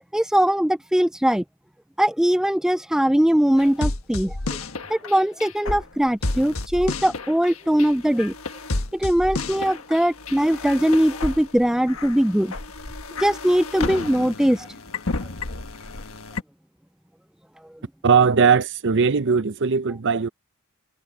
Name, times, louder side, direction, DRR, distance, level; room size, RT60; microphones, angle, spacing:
voice 1, 0.1-1.4 2.0-4.4 4.9-8.3 8.9-12.5 13.2-14.7, equal, 5° right, 0.3 m, -21 dB
sound 1, 3.6-16.4, left 2 dB, 70° left, 1.5 m, -31 dB
voice 2, 18.0-20.3, right 5 dB, 60° right, 0.7 m, -19 dB
head